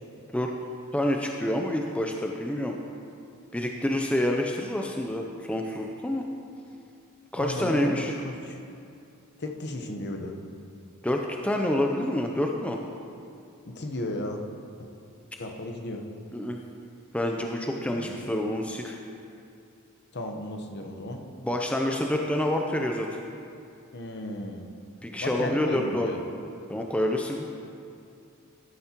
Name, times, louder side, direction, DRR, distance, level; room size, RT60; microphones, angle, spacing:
voice 1, 0.9-2.7 3.5-6.2 7.3-8.1 11.0-12.8 16.3-16.6 17.1-19.0 21.4-23.2 25.0-26.2 26.7-27.5, left 1 dB, 5° left, 1 dB, 0.4 m, -27 dB
voice 2, 7.4-8.6 9.4-10.3 13.6-14.4 14.8-14.9 15.4-16.0 17.9-18.3 20.1-21.2 23.9-24.6 25.2-26.2, left 1 dB, 50° left, 3 dB, 0.9 m, -34 dB
12.0 x 10.0 x 2.9 m, 2.5 s
head